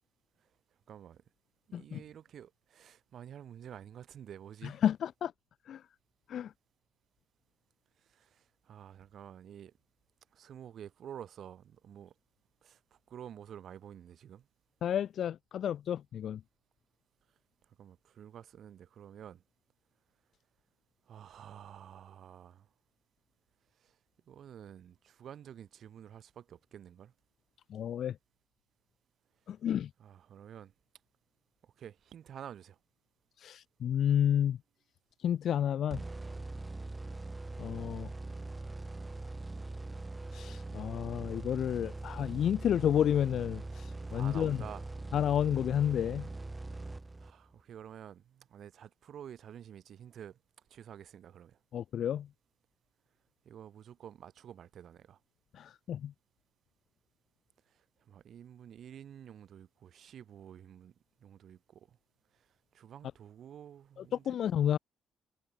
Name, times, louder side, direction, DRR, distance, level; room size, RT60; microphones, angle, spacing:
voice 1, 0.9-1.2 1.7-4.8 8.1-9.7 10.3-12.1 12.6-12.8 13.1-14.4 17.8-19.4 21.1-22.7 23.8-23.9 24.3-27.1 30.0-30.7 31.6-32.8 42.0-42.2 44.1-44.9 47.2-50.4 50.7-51.6 53.4-55.2 58.1-60.9 61.2-62.0 62.7-64.4, right 9 dB, 65° right, 3.0 m, -50 dB
voice 2, 4.6-5.3 5.7-5.8 6.3-6.5 14.8-16.4 27.7-28.2 29.5-29.9 33.4-34.6 35.2-36.0 37.6-38.1 40.3-44.6 45.1-46.3 51.7-52.3 55.5-56.1 64.2-64.8, left 9 dB, 65° left, 1.1 m, -31 dB
sound 1, 35.9-47.6, right 2 dB, 20° right, 5.2 m, -42 dB
cardioid pair, 90°, 0 cm